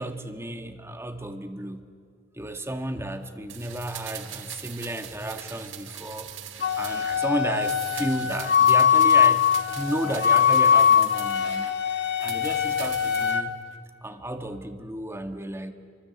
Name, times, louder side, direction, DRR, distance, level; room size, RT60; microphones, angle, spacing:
voice 1, 0.0-1.8 2.3-6.3 6.8-11.7 12.2-13.6 14.0-15.7, right 1 dB, 15° right, 6 dB, 1.7 m, -33 dB
sound 1, 3.5-7.3 7.6-11.8 12.2-13.4 13.7-13.8, right 8 dB, 70° right, 1.8 m, -41 dB
Wind instrument woodwind instrument, 6.6-13.4, left 8 dB, 60° left, 1.4 m, -21 dB
29.5 x 24.5 x 8.1 m, 2.3 s
head